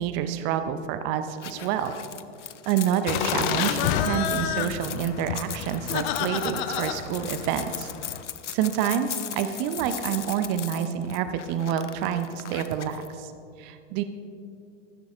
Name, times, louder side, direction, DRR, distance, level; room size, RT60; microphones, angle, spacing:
voice 1, 0.0-1.9 2.7-7.9 8.5-13.3 13.6-14.0, right 9 dB, 30° right, 10 dB, 0.7 m, -28 dB
sound 1, 1.4-13.1, left 9 dB, 70° left, 0.7 m, -38 dB
sound 2, 3.1-8.2, left 9 dB, 40° left, 0.8 m, -29 dB
19.5 x 14.5 x 2.5 m, 2.5 s
figure-of-eight pair, 95°, 37 cm